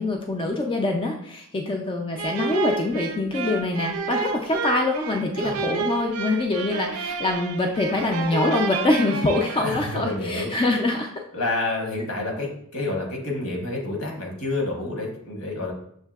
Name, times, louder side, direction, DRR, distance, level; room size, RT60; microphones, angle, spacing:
voice 1, 0.0-11.1, left 2 dB, 25° left, 2 dB, 0.3 m, -24 dB
sound 1, 2.2-10.2, right 4 dB, 70° right, 0.4 m, -30 dB
voice 2, 9.6-10.5 11.3-15.7, left 2 dB, 75° left, 0 dB, 1.1 m, -29 dB
6.4 x 2.6 x 2.3 m, 0.69 s
head